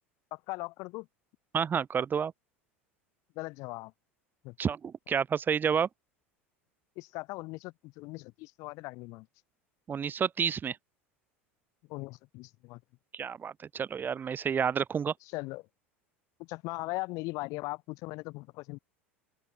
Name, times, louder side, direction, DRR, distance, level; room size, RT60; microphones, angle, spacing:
voice 1, 0.3-1.1 3.4-3.9 4.4-4.6 7.0-9.3 11.9-12.8 15.2-15.7 16.4-18.8, left 23 dB, 55° left, 5.5 m, -39 dB
voice 2, 1.5-2.3 4.6-5.9 9.9-10.8 13.1-15.1, right 7 dB, 30° right, 4.2 m, -30 dB
open air
figure-of-eight pair, 75°, 7 cm